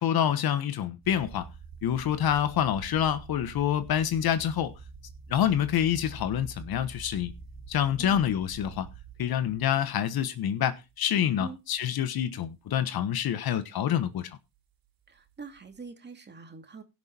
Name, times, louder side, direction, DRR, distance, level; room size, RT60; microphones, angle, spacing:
voice 1, 0.0-1.5 1.8-4.7 5.3-7.3 7.7-8.9 9.2-14.4, left 10 dB, 60° left, 1.3 m, -27 dB
sound 1, 1.0-9.8 10.5-10.9 11.5-11.6 15.2-15.8, right 5 dB, 55° right, 3.3 m, -46 dB
voice 2, 15.1-16.8, right 4 dB, 25° right, 2.4 m, -44 dB
17.0 x 6.3 x 4.4 m
cardioid pair, 115°, 42 cm